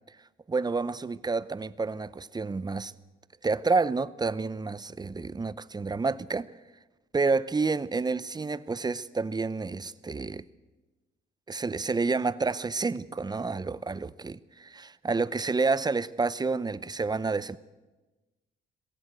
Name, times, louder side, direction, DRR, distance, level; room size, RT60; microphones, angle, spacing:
voice 1, 0.5-2.9 3.4-6.5 7.1-10.4 11.5-17.6, right 4 dB, 20° right, 0.8 m, -29 dB
21.0 x 15.5 x 8.0 m
supercardioid pair, 75°, 21 cm